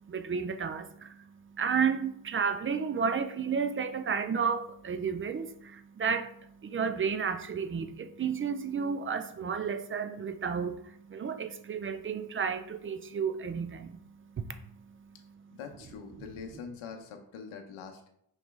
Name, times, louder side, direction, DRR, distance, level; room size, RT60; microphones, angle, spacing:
voice 1, 0.0-15.4 16.2-16.3, right 6 dB, 30° right, 10 dB, 0.4 m, -32 dB
voice 2, 15.5-18.1, left 6 dB, 75° left, 3 dB, 0.7 m, -44 dB
4.1 x 2.9 x 3.4 m, 0.74 s
cardioid pair, 60°, 50 cm